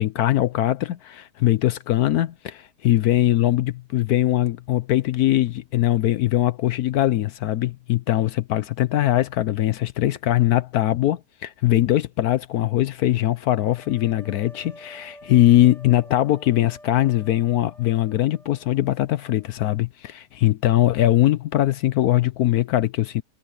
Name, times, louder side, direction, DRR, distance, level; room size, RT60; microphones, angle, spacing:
voice 1, 0.0-23.2, left 14 dB, 70° left, 1.1 m, -21 dB
sound 1, 13.6-19.5, equal, ahead, 5.8 m, -48 dB
omnidirectional pair, 1.8 m